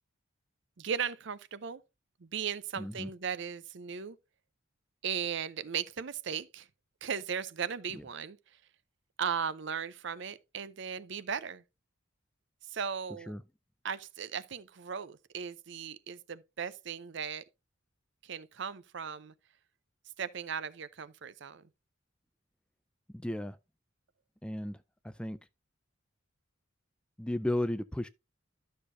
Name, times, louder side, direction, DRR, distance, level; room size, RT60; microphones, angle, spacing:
voice 1, 0.8-1.8 2.2-4.2 5.0-6.7 7.0-8.4 9.2-11.6 12.7-13.4 13.8-17.4 18.2-19.3 20.2-21.6, right 7 dB, 60° right, 0.6 m, -37 dB
voice 2, 2.8-3.1 8.0-8.1 13.3-13.4 23.1-23.6 24.4-24.8 25.0-25.4 27.2-28.1, left 1 dB, 5° left, 0.3 m, -34 dB
12.0 x 6.6 x 2.7 m
head